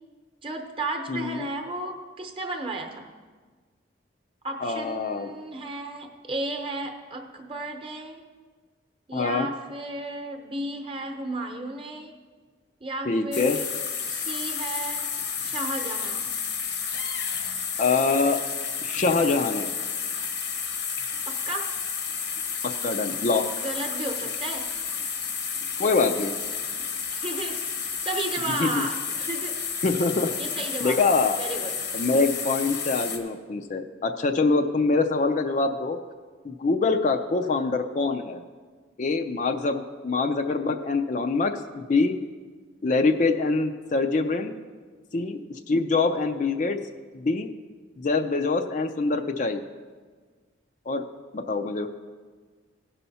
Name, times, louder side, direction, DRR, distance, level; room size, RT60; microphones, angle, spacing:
voice 1, 0.4-3.1 4.4-8.2 9.1-12.1 12.8-13.7 14.1-15.1 15.4-16.3 21.3-21.8 23.6-24.7 27.1-29.6 30.4-31.0 31.4-31.8, right 2 dB, 30° right, 4 dB, 0.9 m, -33 dB
voice 2, 1.1-1.5 4.6-5.3 9.1-9.5 13.1-13.6 17.8-18.4 18.8-19.7 22.8-23.4 25.8-26.3 28.6-28.8 29.8-30.3 30.8-31.4 31.9-36.0 36.4-38.4 39.0-42.2 42.8-44.6 45.1-46.8 47.1-47.5 48.0-49.6 50.9-51.0 51.3-51.9, left 3 dB, 40° left, 5 dB, 0.4 m, -24 dB
sound 1, 13.3-33.2, left 6 dB, 75° left, 1.0 m, -31 dB
16.5 x 5.6 x 4.2 m, 1.5 s
head